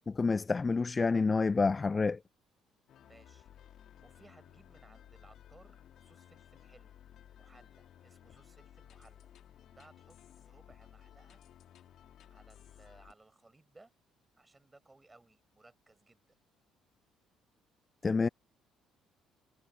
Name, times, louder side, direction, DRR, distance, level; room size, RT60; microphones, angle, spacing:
voice 1, 0.1-2.2 18.0-18.3, left 4 dB, 30° left, 0.5 m, -28 dB
sound 1, 2.9-13.1, left 10 dB, 60° left, 2.7 m, -57 dB
voice 2, 3.0-3.5 4.0-7.0 7.4-9.3 9.7-11.4 12.3-13.9 14.3-16.2, right 2 dB, 20° right, 7.4 m, -62 dB
hypercardioid pair, 50°, 0 cm